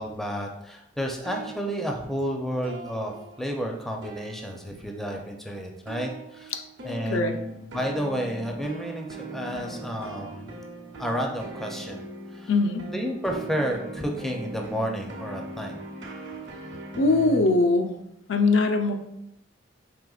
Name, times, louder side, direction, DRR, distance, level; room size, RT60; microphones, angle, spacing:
voice 1, 0.0-6.5 6.8-10.5 10.9-12.5 12.9-15.8, equal, ahead, 1 dB, 0.4 m, -31 dB
sound 1, 1.2-3.7 4.0-5.0 5.9-17.4, right 2 dB, 65° right, 0.8 m, -40 dB
voice 2, 12.5-12.9 17.0-17.9 18.3-18.9, left 3 dB, 85° left, 5 dB, 0.5 m, -21 dB
4.9 x 3.2 x 2.3 m, 0.84 s
head